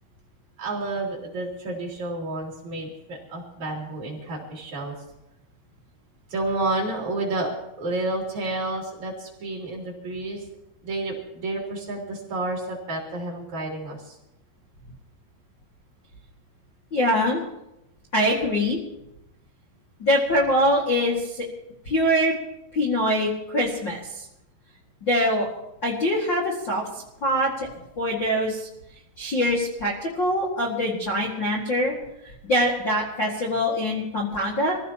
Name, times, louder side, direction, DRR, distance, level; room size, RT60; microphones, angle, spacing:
voice 1, 0.6-5.0 6.3-7.5 7.8-10.4 10.8-14.2, right 2 dB, 40° right, -2 dB, 4.1 m, -30 dB
voice 2, 16.9-17.4 18.1-18.8 20.0-21.4 21.8-22.3 22.7-24.2 25.0-25.5 25.8-26.8 27.2-27.5 28.0-28.7 29.2-31.9 32.4-34.8, equal, 45° left, -5 dB, 1.6 m, -23 dB
26.0 x 16.0 x 3.0 m, 0.89 s
omnidirectional pair, 5.4 m